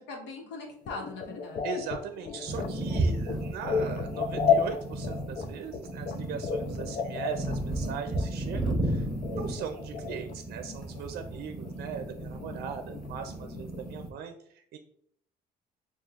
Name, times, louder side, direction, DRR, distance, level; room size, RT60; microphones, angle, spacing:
voice 1, 0.1-1.7, left 3 dB, 85° left, 2 dB, 1.2 m, -40 dB
sound 1, 0.9-10.3 10.6-11.4 11.6-13.9, left 6 dB, 55° left, 0.6 m, -33 dB
voice 2, 1.6-9.1 9.3-14.8, right 7 dB, 65° right, 7 dB, 0.5 m, -39 dB
sound 2, 2.5-14.1, right 1 dB, 5° left, 1.3 m, -34 dB
6.5 x 2.5 x 2.4 m, 0.64 s
cardioid pair, 110°, 17 cm